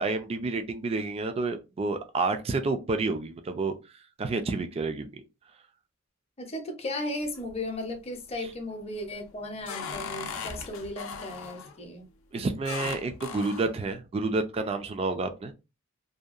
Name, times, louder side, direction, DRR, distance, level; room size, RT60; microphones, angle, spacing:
voice 1, 0.0-3.7 4.2-5.1 12.3-15.5, right 3 dB, 30° right, 0.3 m, -29 dB
voice 2, 6.4-12.1, left 1 dB, 30° left, 0.6 m, -36 dB
sound 1, 7.2-7.9 8.3-8.7 9.2-11.8 12.6-13.8, left 5 dB, 75° left, 0.5 m, -38 dB
2.7 x 2.2 x 2.4 m
head